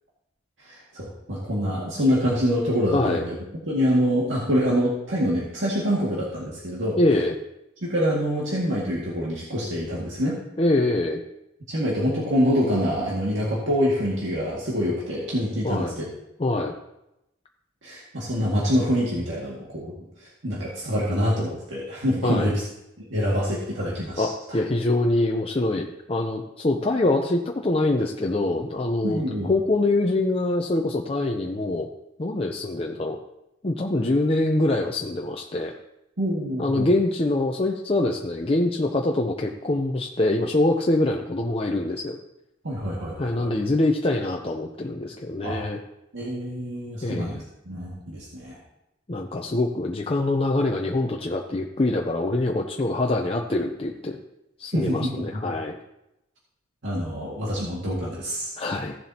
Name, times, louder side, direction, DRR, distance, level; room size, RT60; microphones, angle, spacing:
voice 1, 0.7-3.4 3.7-7.0 7.8-10.4 11.7-16.0 17.8-19.9 20.4-22.6 23.0-24.6 29.0-29.5 36.2-36.9 42.6-43.5 45.4-45.6 46.1-48.6 54.7-55.5 56.8-58.5, equal, 80° right, -5 dB, 2.1 m, -26 dB
voice 2, 2.9-3.3 7.0-7.4 10.6-11.2 15.6-15.9 16.4-16.7 22.2-22.5 24.2-31.9 32.2-33.2 33.6-35.7 36.6-42.2 43.2-45.8 47.0-47.4 49.1-54.2 54.6-55.8 58.6-59.0, left 2 dB, 30° left, 1 dB, 0.6 m, -24 dB
16.0 x 7.3 x 2.9 m, 0.89 s
head